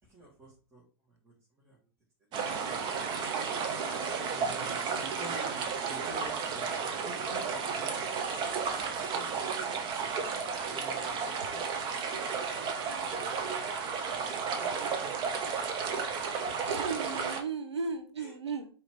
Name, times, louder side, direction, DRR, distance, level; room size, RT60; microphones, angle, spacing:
voice 1, 0.0-1.8 4.3-8.6 9.1-12.0 14.1-16.0 16.4-16.5 18.2-18.3, right 1 dB, 15° right, -6 dB, 1.8 m, -51 dB
sound 1, 2.3-17.4, right 5 dB, 35° right, 0.8 m, -33 dB
voice 2, 12.5-13.4 14.1-14.7 16.7-18.7, right 4 dB, 85° right, 6 dB, 0.9 m, -38 dB
4.9 x 2.9 x 3.6 m, 0.40 s
figure-of-eight pair, 100°, 14 cm